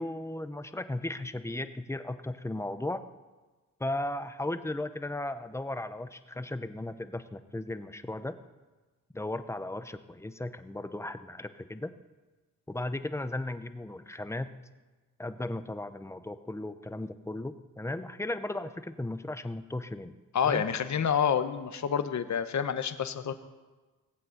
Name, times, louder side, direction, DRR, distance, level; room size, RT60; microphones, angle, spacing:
voice 1, 0.0-3.0 3.8-8.4 9.1-11.9 12.7-14.5 15.2-20.1 20.4-20.6, left 1 dB, 10° left, 11 dB, 0.7 m, -36 dB
voice 2, 20.3-23.3, left 8 dB, 55° left, 10 dB, 1.0 m, -28 dB
18.5 x 8.4 x 7.9 m, 1.3 s
cardioid pair, 105°, 35 cm